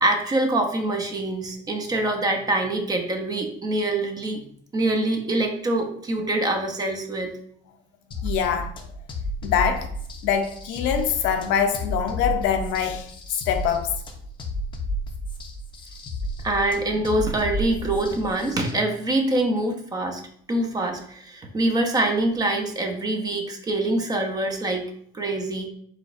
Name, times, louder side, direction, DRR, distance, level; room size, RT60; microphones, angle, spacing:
voice 1, 0.0-4.4 4.7-7.3 16.4-20.2 20.5-24.8 25.1-25.7, right 2 dB, 20° right, 0.6 m, -24 dB
sound 1, 8.1-18.7, equal, 25° left, 0.6 m, -32 dB
voice 2, 8.2-8.8 9.4-9.9 10.2-13.9, left 8 dB, 75° left, 0.6 m, -24 dB
4.9 x 3.8 x 2.5 m
cardioid pair, 160°, 20 cm